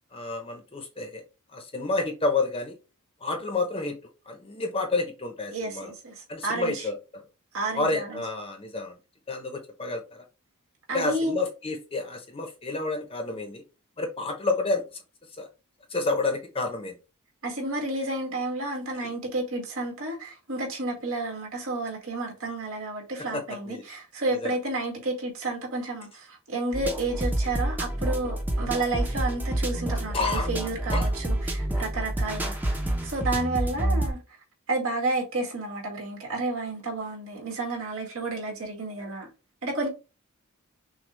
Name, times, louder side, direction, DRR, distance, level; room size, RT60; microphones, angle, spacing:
voice 1, 0.1-1.2 1.5-2.7 3.2-4.0 4.3-5.9 6.3-7.2 7.7-9.0 9.3-10.2 10.9-13.6 14.0-14.8 15.4-15.5 15.9-16.9 19.0-19.1 23.3-23.8 24.3-24.5 30.1-30.5 30.9-31.1, left 3 dB, 25° left, 0.8 m, -29 dB
voice 2, 5.5-6.9 7.5-8.2 10.9-11.4 17.4-34.2 34.7-39.3 39.6-39.9, right 2 dB, 75° right, 2.0 m, -31 dB
sound 1, 26.7-34.1, right 1 dB, 10° right, 0.7 m, -28 dB
6.1 x 2.3 x 3.3 m
head